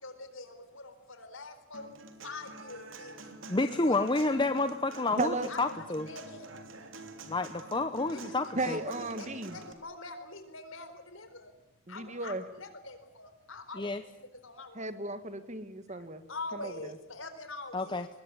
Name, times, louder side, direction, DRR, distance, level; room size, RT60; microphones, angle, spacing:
voice 1, 0.0-1.9 2.2-3.1 3.7-3.9 5.5-5.7 6.1-6.5 8.1-11.5 11.9-13.9 14.2-15.1 16.3-18.1, left 3 dB, 70° left, 9 dB, 4.3 m, -44 dB
Human voice / Acoustic guitar, 1.7-9.7, right 2 dB, 65° right, 3.2 m, -48 dB
voice 2, 3.5-6.1 7.3-8.8 13.7-14.0 17.7-18.1, left 2 dB, 20° left, 9 dB, 0.9 m, -29 dB
voice 3, 5.2-5.5 8.6-9.6 11.9-12.4 14.8-16.2 16.5-16.9, right 2 dB, 35° right, 11 dB, 1.7 m, -35 dB
23.5 x 20.5 x 9.8 m, 0.87 s
head